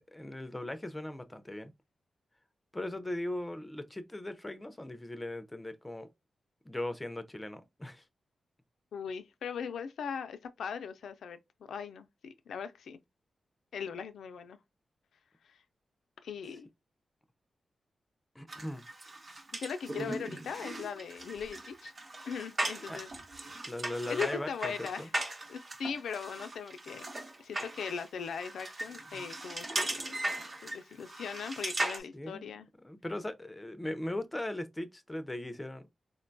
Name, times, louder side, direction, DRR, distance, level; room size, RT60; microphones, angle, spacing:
voice 1, 0.1-1.7 2.7-6.1 6.7-8.0 18.4-18.8 22.9-23.0 23.6-24.7 25.0-25.1 29.1-29.2 30.5-30.7 32.1-32.5 32.8-35.9, left 1 dB, 15° left, 0.4 m, -39 dB
voice 2, 8.9-11.4 11.7-13.0 13.7-14.6 15.4-15.6 16.2-16.7 19.5-21.9 22.3-23.1 24.1-25.1 25.5-27.1 27.4-30.2 30.6-32.7, left 6 dB, 90° left, 0.3 m, -39 dB
sound 1, 18.5-32.0, right 2 dB, 35° right, 0.8 m, -38 dB
3.7 x 2.2 x 2.5 m
cardioid pair, 90°, 0 cm